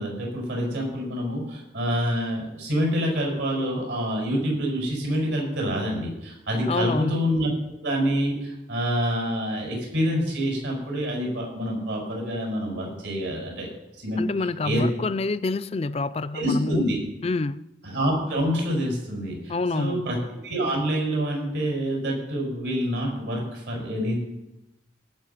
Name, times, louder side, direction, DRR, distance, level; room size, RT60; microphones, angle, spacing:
voice 1, 0.0-7.5 7.8-13.7 14.0-14.2 14.6-14.9 16.3-17.0 17.8-20.2 20.4-24.2, equal, 80° right, 0 dB, 6.3 m, -27 dB
voice 2, 6.7-7.3 14.2-16.9 17.2-17.7 19.5-20.0, left 3 dB, 35° left, 14 dB, 0.4 m, -27 dB
18.5 x 8.2 x 5.9 m, 0.93 s
head